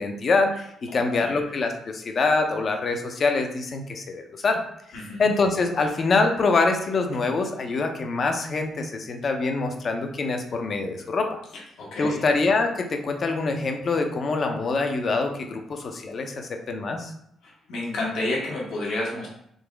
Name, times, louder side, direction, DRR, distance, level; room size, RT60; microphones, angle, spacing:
voice 1, 0.0-4.6 5.2-11.3 12.0-17.1, left 3 dB, 45° left, 4 dB, 0.6 m, -25 dB
voice 2, 4.9-5.3 11.5-12.3 17.4-19.3, left 2 dB, 75° left, -4 dB, 1.5 m, -30 dB
3.9 x 2.9 x 3.4 m, 0.73 s
cardioid pair, 90°, 0 cm